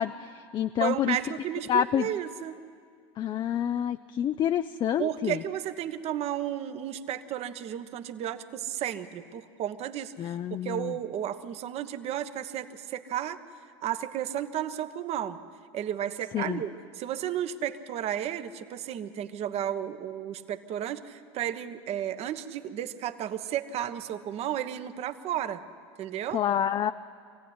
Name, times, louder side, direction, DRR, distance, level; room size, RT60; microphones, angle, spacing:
voice 1, 0.0-1.2 1.7-2.1 3.2-5.4 10.2-11.0 16.3-16.6 26.3-26.9, left 9 dB, 35° left, 10 dB, 0.5 m, -28 dB
voice 2, 0.8-2.6 5.0-10.4 10.6-13.4 13.8-15.4 15.7-25.6 26.0-26.4, right 10 dB, 45° right, 10 dB, 1.3 m, -33 dB
25.0 x 16.0 x 9.7 m, 2.2 s
hypercardioid pair, 100°, 15 cm